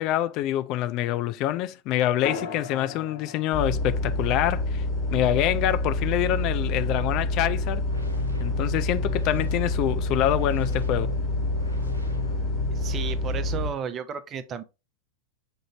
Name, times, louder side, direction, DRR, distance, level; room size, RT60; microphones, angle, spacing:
voice 1, 0.0-4.8 5.1-7.8 8.4-11.1, left 13 dB, 40° left, 0.4 m, -26 dB
sound 1, 2.2-7.3, left 5 dB, 55° left, 1.2 m, -41 dB
sound 2, 3.5-13.7, left 2 dB, 20° left, 1.4 m, -27 dB
sound 3, 7.8-13.1, left 5 dB, 80° right, 0.8 m, -37 dB
voice 2, 12.7-14.6, right 7 dB, 30° right, 0.5 m, -33 dB
6.2 x 2.6 x 2.9 m
figure-of-eight pair, 90°, 0 cm